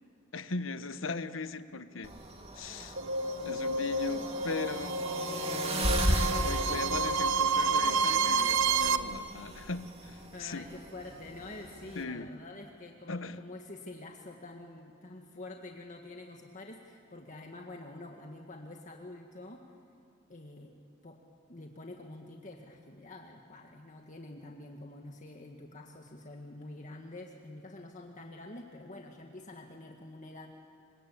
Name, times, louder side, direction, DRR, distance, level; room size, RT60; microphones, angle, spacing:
voice 1, 0.3-2.1 2.5-3.0 3.4-5.0 6.4-10.7 11.9-12.3 13.1-13.4, left 3 dB, 90° left, 11 dB, 1.1 m, -38 dB
sound 1, 2.0-12.0, right 1 dB, 35° right, 2.9 m, -36 dB
sound 2, 3.0-9.0, right 4 dB, 85° right, 1.0 m, -29 dB
voice 2, 10.3-19.6 20.3-20.7 21.0-21.2 21.5-30.5, left 2 dB, 40° left, 2 dB, 1.8 m, -47 dB
27.5 x 24.5 x 8.5 m, 2.3 s
head